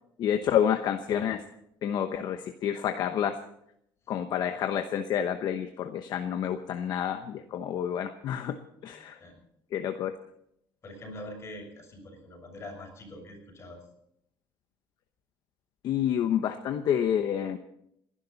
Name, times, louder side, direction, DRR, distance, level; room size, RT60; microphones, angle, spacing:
voice 1, 0.2-1.4 1.8-3.4 4.1-8.6 8.8-9.2 9.7-10.1 15.8-17.6, left 9 dB, 55° left, 7 dB, 0.9 m, -29 dB
voice 2, 8.9-9.4 10.8-13.8, left 1 dB, 30° left, 1 dB, 6.3 m, -44 dB
29.5 x 11.5 x 4.1 m, 0.76 s
cardioid pair, 150°, 9 cm